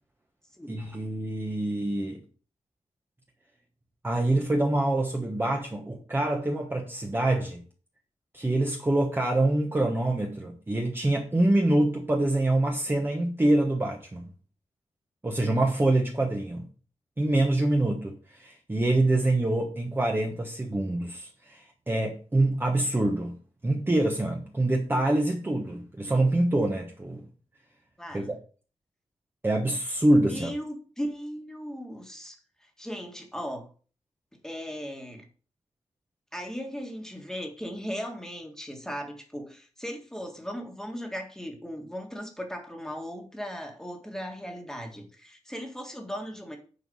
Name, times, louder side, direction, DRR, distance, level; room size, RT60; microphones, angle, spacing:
voice 1, 0.7-2.2 4.0-7.6 8.3-14.2 15.2-16.6 17.2-23.4 23.6-27.2 28.1-28.4 29.4-30.5, right 1 dB, 15° right, 1.1 m, -25 dB
voice 2, 28.0-28.3 30.3-32.4 32.8-33.7 34.4-35.2 36.3-46.6, equal, 5° left, 1.7 m, -37 dB
9.7 x 4.6 x 5.5 m
wide cardioid pair, 165°, 12 cm